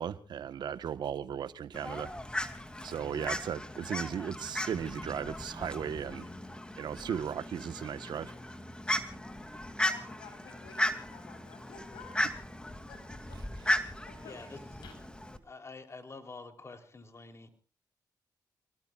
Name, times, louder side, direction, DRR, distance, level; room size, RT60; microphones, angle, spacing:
voice 1, 0.0-2.1 2.8-6.3 6.8-8.3, right 8 dB, 70° right, 1.2 m, -36 dB
Fowl, 1.7-15.4, left 1 dB, 10° left, 2.5 m, -36 dB
voice 2, 9.8-12.3 12.9-15.0, left 5 dB, 85° left, 7.5 m, -53 dB
voice 3, 14.2-14.6 15.4-17.5, left 3 dB, 40° left, 3.4 m, -47 dB
29.5 x 18.5 x 2.4 m
cardioid pair, 65°, 8 cm